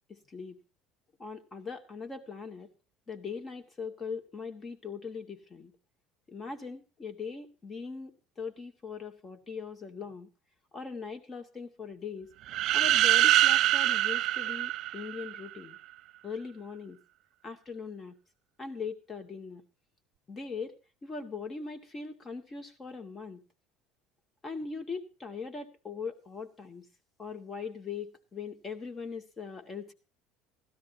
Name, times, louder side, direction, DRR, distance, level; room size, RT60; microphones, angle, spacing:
voice 1, 0.1-0.6 1.2-2.7 3.1-5.7 6.3-10.3 10.7-12.3 12.7-15.8 16.2-17.0 17.4-18.2 18.6-19.6 20.3-23.4 24.4-26.9 27.2-29.9, left 5 dB, 30° left, 7 dB, 2.3 m, -40 dB
sound 1, 12.5-15.4, right 14 dB, 60° right, 0.7 m, -24 dB
16.5 x 13.0 x 2.9 m, 0.32 s
supercardioid pair, 100°, 0 cm